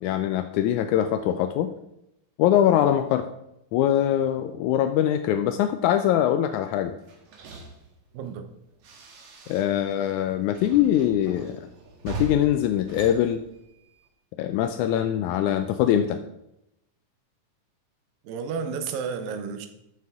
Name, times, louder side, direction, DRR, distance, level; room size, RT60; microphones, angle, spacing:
voice 1, 0.0-1.7 2.4-3.3 3.7-7.0 9.5-11.7 12.0-13.4 14.4-16.2, left 11 dB, 85° left, 8 dB, 1.7 m, -23 dB
sound 1, 7.0-9.9 10.2-14.1, right 2 dB, 65° right, 2.5 m, -40 dB
voice 2, 8.1-8.5 18.2-19.7, right 6 dB, 85° right, 7 dB, 2.6 m, -31 dB
13.0 x 6.3 x 3.6 m, 0.84 s
omnidirectional pair, 3.9 m